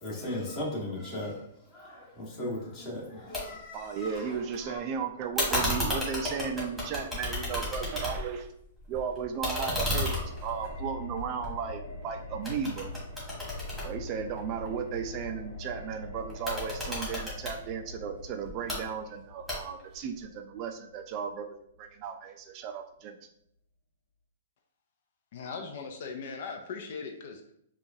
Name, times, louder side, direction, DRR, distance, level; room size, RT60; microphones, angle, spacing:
voice 1, 0.0-4.8, left 1 dB, 25° left, -5 dB, 1.5 m, -38 dB
sound 1, 3.3-3.4 3.7-4.6 5.4-8.4 8.8-12.0 12.4-14.7 16.3-17.6 18.4-18.8 19.5-19.9, left 1 dB, ahead, 1.5 m, -33 dB
voice 2, 3.7-8.5 8.9-12.9 13.8-23.2, right 7 dB, 35° right, 6 dB, 0.3 m, -35 dB
sound 2, 9.9-21.8 22.1-22.2, left 2 dB, 75° left, 1.0 m, -43 dB
voice 3, 25.3-27.5, left 5 dB, 60° left, 4 dB, 0.5 m, -39 dB
4.6 x 2.3 x 2.7 m, 0.72 s
hypercardioid pair, 145°, 0 cm